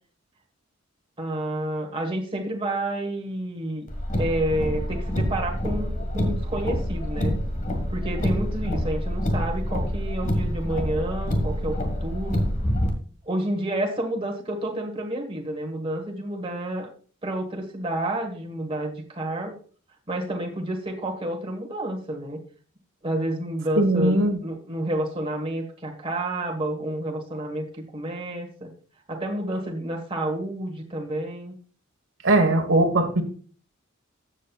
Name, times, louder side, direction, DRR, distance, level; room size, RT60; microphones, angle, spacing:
voice 1, 1.2-3.9 4.1-7.3 7.9-12.4 13.2-16.9 17.2-19.6 20.1-22.4 23.0-28.7 29.1-31.5, right 1 dB, 25° right, 2 dB, 1.4 m, -30 dB
Car, 3.9-12.9, equal, 40° left, 1.6 m, -27 dB
voice 2, 23.8-24.4 32.2-33.2, right 2 dB, 75° right, 5 dB, 1.4 m, -20 dB
14.0 x 7.5 x 2.4 m, 0.42 s
head